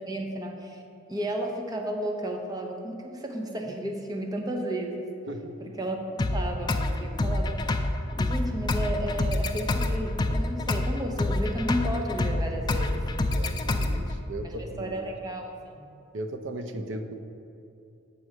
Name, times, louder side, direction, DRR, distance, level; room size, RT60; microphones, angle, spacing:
voice 1, 0.1-0.8 1.1-5.1 5.6-6.0 6.3-7.7 8.1-13.0 14.4-15.9, right 1 dB, 20° right, 2 dB, 0.8 m, -33 dB
voice 2, 5.3-5.7 13.2-14.9 16.1-17.1, right 1 dB, 70° right, 6 dB, 0.6 m, -37 dB
sound 1, 6.2-14.2, left 2 dB, 20° left, 0.3 m, -27 dB
7.0 x 4.7 x 6.4 m, 2.6 s
head